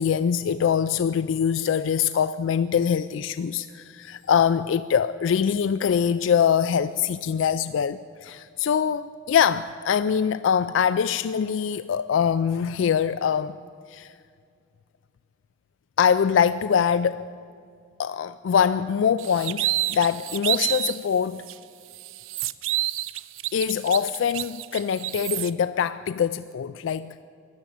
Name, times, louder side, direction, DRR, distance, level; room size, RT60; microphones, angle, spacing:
voice 1, 0.0-13.6 13.9-14.1 16.0-17.3 18.0-21.5 23.5-27.2, left 7 dB, 70° left, 0.3 m, -23 dB
sound 1, 19.2-21.0 21.5-21.6 21.9-25.5, right 16 dB, 80° right, 0.4 m, -29 dB
14.0 x 11.5 x 8.5 m
head